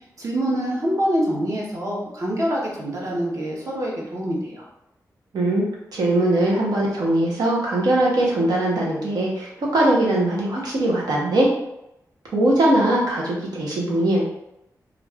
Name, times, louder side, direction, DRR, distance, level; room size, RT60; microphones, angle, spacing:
voice 1, 0.2-4.7, equal, 55° right, -4 dB, 1.0 m, -25 dB
voice 2, 5.3-11.5 12.3-14.2, right 1 dB, 85° right, -3 dB, 0.9 m, -21 dB
2.5 x 2.4 x 3.3 m, 0.83 s
wide cardioid pair, 95°, 7 cm